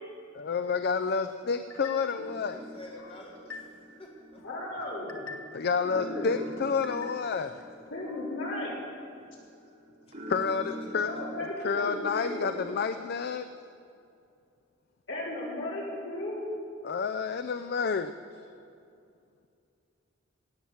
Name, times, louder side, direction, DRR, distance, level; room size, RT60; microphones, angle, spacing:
voice 1, 0.3-2.6 5.5-7.7 10.3-10.6 10.9-11.1 11.6-13.5 16.8-18.1, left 5 dB, 50° left, 9 dB, 0.4 m, -29 dB
sound 1, 1.7-2.3 2.8-4.0 4.4-5.7 6.1-7.5 7.9-8.4, left 4 dB, 85° left, 1.4 m, -47 dB
sound 2, 2.2-12.6, equal, 45° right, 2.5 m, -45 dB
voice 2, 2.5-4.4 10.3-10.9, left 1 dB, 30° left, -2 dB, 1.5 m, -48 dB
voice 3, 4.4-5.2 5.9-6.3 7.9-8.7 11.0-12.6 15.1-16.4, left 1 dB, 65° left, -5 dB, 4.4 m, -35 dB
17.5 x 8.8 x 7.2 m, 2.5 s
head